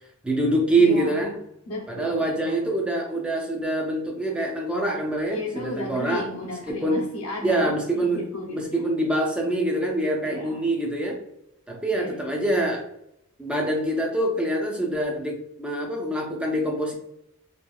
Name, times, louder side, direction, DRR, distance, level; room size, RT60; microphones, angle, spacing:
voice 1, 0.2-1.4 1.9-6.2 6.7-7.0 7.4-8.2 8.5-11.2 11.7-12.8 13.4-16.9, right 1 dB, 5° right, 0 dB, 0.3 m, -25 dB
voice 2, 0.8-1.3 1.7-2.7 5.3-8.9 10.2-10.6 11.9-12.2, left 1 dB, 85° left, -1 dB, 0.8 m, -34 dB
2.8 x 2.3 x 2.2 m, 0.79 s
head